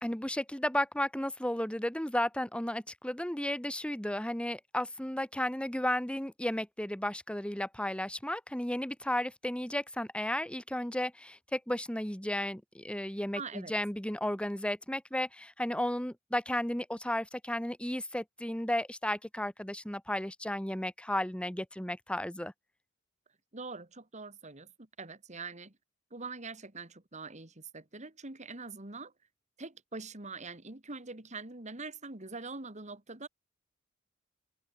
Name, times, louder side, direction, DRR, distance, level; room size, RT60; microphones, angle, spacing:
voice 1, 0.0-22.5, left 1 dB, 5° left, 1.6 m, -34 dB
voice 2, 13.3-13.7 23.5-25.7 26.1-29.1 29.6-33.3, right 3 dB, 35° right, 2.6 m, -44 dB
open air
head